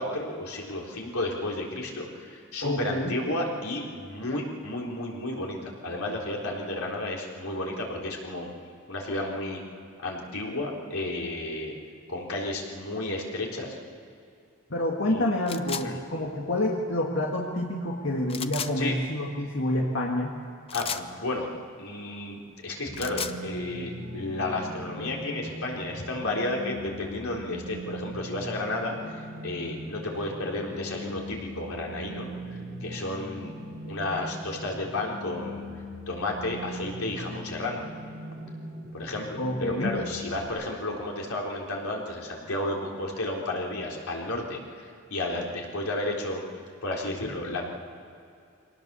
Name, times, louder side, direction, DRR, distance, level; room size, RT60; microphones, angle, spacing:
voice 1, 0.0-8.5 8.9-9.6 10.0-11.7 12.1-13.8 15.0-15.3 15.8-16.0 18.8-18.9 20.7-21.5 21.8-33.5 33.9-35.6 36.1-37.8 38.9-46.4 46.8-47.6, left 2 dB, 90° left, -1 dB, 3.9 m, -32 dB
voice 2, 2.6-3.1 14.7-20.4 39.4-40.0, left 1 dB, 60° left, -1 dB, 1.8 m, -28 dB
sound 1, 15.5-15.9 18.3-18.7 20.7-21.1 22.8-23.4, left 7 dB, 25° left, 0.6 m, -33 dB
sound 2, 22.9-40.5, equal, 35° right, 7.8 m, -40 dB
24.5 x 18.5 x 6.9 m, 2.5 s
head